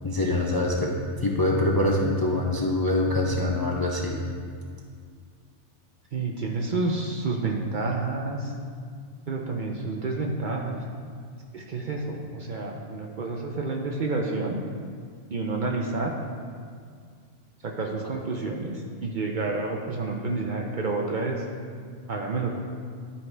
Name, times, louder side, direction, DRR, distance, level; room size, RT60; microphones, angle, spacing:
voice 1, 0.0-1.0 1.2-4.2, left 1 dB, 25° left, -2 dB, 0.5 m, -24 dB
voice 2, 6.1-8.5 9.3-10.8 11.5-14.6 15.3-16.1 17.6-21.4 22.1-22.6, right 3 dB, 50° right, 0 dB, 0.7 m, -29 dB
11.0 x 4.6 x 3.3 m, 2.1 s
omnidirectional pair, 1.2 m